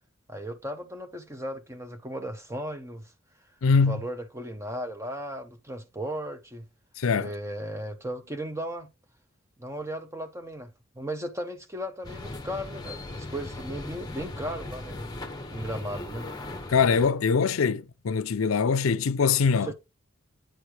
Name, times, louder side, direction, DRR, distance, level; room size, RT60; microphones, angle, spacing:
voice 1, 0.3-3.1 3.9-6.6 7.2-8.9 9.6-15.1 15.5-16.3 19.7-19.8, equal, 15° right, 0.8 m, -36 dB
voice 2, 3.6-4.0 7.0-7.3 16.7-19.7, left 5 dB, 90° left, 0.5 m, -23 dB
sound 1, 12.0-17.1, left 2 dB, 20° left, 0.9 m, -38 dB
9.0 x 3.3 x 4.5 m
head